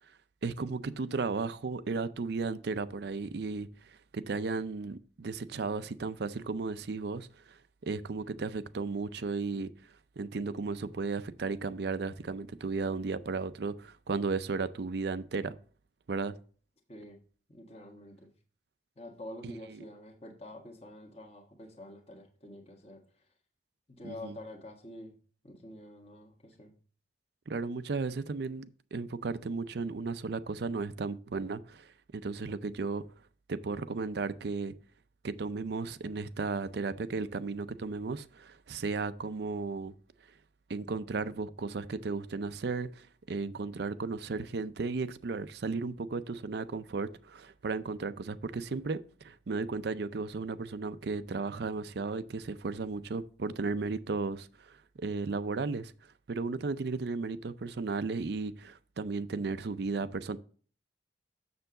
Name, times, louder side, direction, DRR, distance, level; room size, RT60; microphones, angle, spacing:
voice 1, 0.4-3.7 4.1-7.3 7.8-9.7 10.2-15.5 16.1-16.3 19.4-19.5 24.0-24.3 27.5-28.7 28.9-31.9 32.1-33.0 33.5-34.7 35.2-39.9 40.7-55.9 56.3-60.4, right 4 dB, 60° right, 0.5 m, -35 dB
voice 2, 16.9-17.2 17.5-18.3 19.0-23.0 23.9-25.2 25.4-26.7, left 1 dB, 35° left, 1.3 m, -47 dB
6.9 x 6.8 x 3.8 m
head